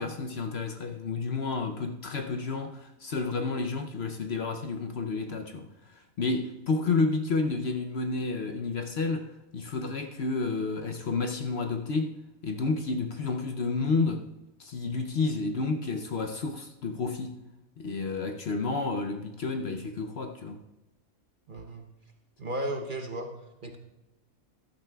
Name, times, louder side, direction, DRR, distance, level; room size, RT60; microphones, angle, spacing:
voice 1, 0.0-12.2 12.4-14.3 14.6-17.4 17.8-20.6, left 4 dB, 55° left, 0.8 m, -30 dB
voice 2, 21.5-21.9 22.4-23.3 23.6-23.8, right 1 dB, 40° right, 0.9 m, -34 dB
14.0 x 12.5 x 2.3 m
omnidirectional pair, 1.5 m